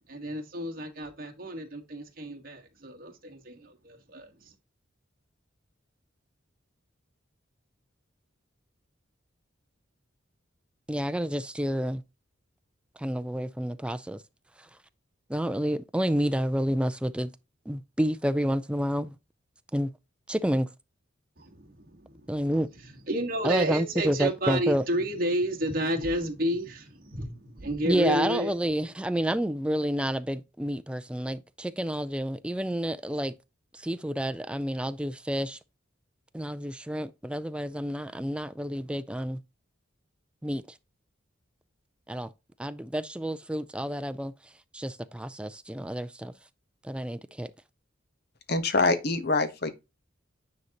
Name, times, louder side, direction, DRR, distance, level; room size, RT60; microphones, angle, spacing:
voice 1, 0.1-4.3 21.4-22.4 22.7-28.5, equal, 45° right, 1.5 m, -31 dB
voice 2, 10.9-12.0 13.0-14.2 15.3-17.3 17.7-19.2 19.7-19.9 20.3-20.7 22.3-22.7 23.4-24.8 27.9-33.3 33.7-35.6 36.3-39.4 40.4-40.6 42.1-42.3 42.6-44.3 44.7-46.3 46.8-47.5, equal, 5° right, 0.3 m, -29 dB
voice 3, 48.5-49.7, left 3 dB, 50° left, 0.9 m, -25 dB
9.5 x 4.0 x 2.9 m
head